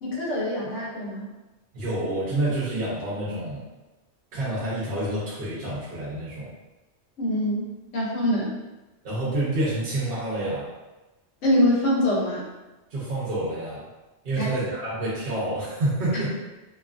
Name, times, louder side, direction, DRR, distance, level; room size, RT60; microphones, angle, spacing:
voice 1, 0.0-1.3 7.2-7.7 7.9-8.5 11.4-12.4 14.4-14.5, left 1 dB, 90° left, -5 dB, 1.1 m, -24 dB
voice 2, 1.7-3.7 4.3-6.5 9.0-10.7 12.9-13.9 14.2-16.3, right 1 dB, 55° right, -8 dB, 0.9 m, -28 dB
2.8 x 2.3 x 2.4 m, 1.1 s
omnidirectional pair, 1.2 m